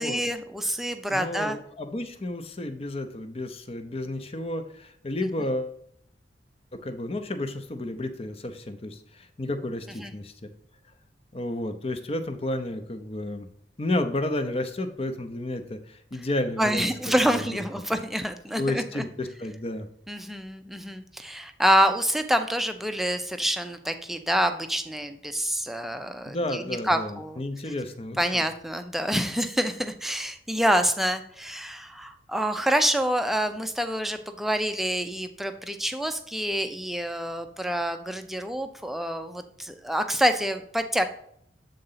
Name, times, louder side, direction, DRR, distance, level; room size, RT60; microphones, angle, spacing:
voice 1, 0.0-1.6 10.0-10.1 16.6-19.0 20.1-27.4 28.2-41.1, equal, ahead, 7 dB, 0.5 m, -27 dB
voice 2, 1.1-5.8 6.8-10.5 11.3-13.5 13.8-16.9 17.3-17.6 18.6-19.9 26.3-28.4, left 1 dB, 35° left, 8 dB, 0.7 m, -31 dB
7.8 x 3.9 x 5.6 m, 0.67 s
head